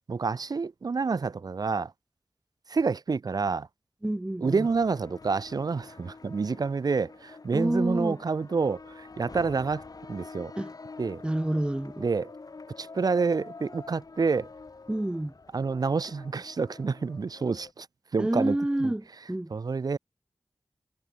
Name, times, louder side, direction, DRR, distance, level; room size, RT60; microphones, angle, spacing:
voice 1, 0.1-1.9 2.7-3.7 4.4-9.8 10.1-10.5 11.0-11.2 12.0-12.3 12.8-14.5 15.5-17.9 18.1-18.9 19.5-20.0, right 4 dB, 85° right, 1.7 m, -28 dB
voice 2, 4.0-4.7 7.5-8.2 10.6-10.7 11.2-12.0 14.9-15.3 18.2-19.5, right 1 dB, 15° right, 0.6 m, -28 dB
sound 1, 4.4-17.7, left 4 dB, 70° left, 5.4 m, -47 dB
cardioid pair, 45°, 7 cm